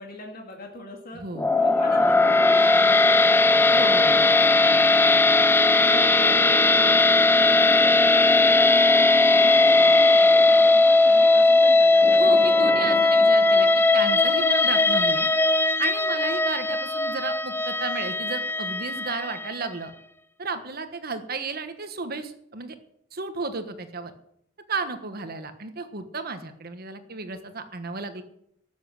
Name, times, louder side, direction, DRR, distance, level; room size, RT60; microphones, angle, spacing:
voice 1, 0.0-1.2 1.6-5.2 5.8-8.7 9.0-12.6, left 2 dB, 50° left, 1 dB, 2.1 m, -41 dB
voice 2, 1.1-1.5 3.7-4.1 12.1-15.3 15.8-19.9 20.4-22.7 23.1-24.1 24.7-28.2, right 4 dB, 50° right, 9 dB, 1.3 m, -33 dB
sound 1, 1.3-19.6, left 3 dB, 10° left, 0.5 m, -18 dB
13.0 x 7.4 x 7.6 m, 0.73 s
head